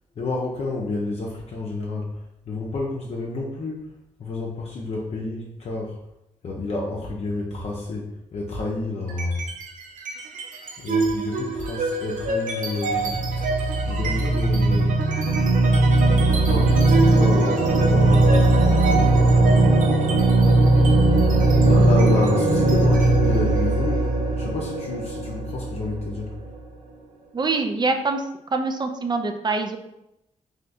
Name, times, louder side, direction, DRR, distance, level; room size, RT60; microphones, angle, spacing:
voice 1, 0.2-2.1 2.5-3.9 4.2-6.0 6.4-9.4 10.8-13.2 13.9-14.9 16.5-20.2 21.6-26.3, left 3 dB, 55° left, -3 dB, 0.6 m, -30 dB
sound 1, 9.1-9.6 10.0-26.6, right 2 dB, 80° right, 0.6 m, -19 dB
voice 2, 27.3-28.2 28.5-29.8, right 3 dB, 35° right, 6 dB, 0.4 m, -24 dB
2.8 x 2.2 x 4.0 m, 0.86 s
cardioid pair, 60°, 13 cm